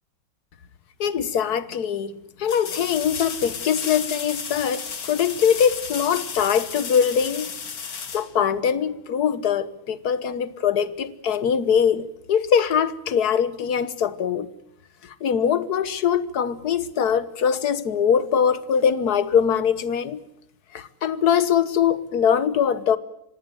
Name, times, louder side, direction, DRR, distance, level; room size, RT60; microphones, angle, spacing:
voice 1, 1.0-7.5 8.1-14.5 15.0-20.2 20.7-23.0, left 7 dB, 55° left, 1.5 m, -22 dB
sound 1, 1.1-1.2 2.4-9.0 11.9-12.0, left 6 dB, 70° left, 2.9 m, -33 dB
25.0 x 19.0 x 9.3 m
omnidirectional pair, 2.3 m